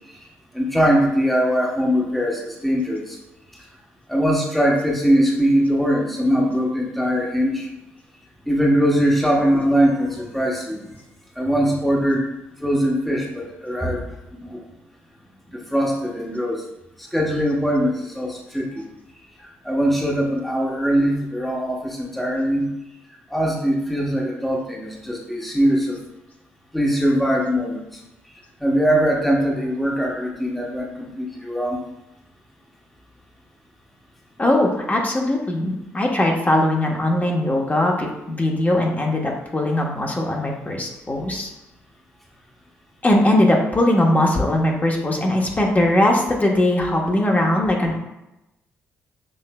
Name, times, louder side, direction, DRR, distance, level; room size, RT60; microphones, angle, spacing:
voice 1, 0.5-3.2 4.1-7.7 8.5-10.8 11.4-12.3 12.6-14.0 14.3-14.6 15.5-16.6 17.1-18.8 19.6-22.7 23.3-26.0 26.7-27.8 28.6-31.8, equal, ahead, -2 dB, 1.0 m, -21 dB
voice 2, 34.4-41.5 43.0-48.0, left 1 dB, 25° left, 0 dB, 1.1 m, -20 dB
6.4 x 3.1 x 2.2 m, 0.92 s
hypercardioid pair, 45°, 7 cm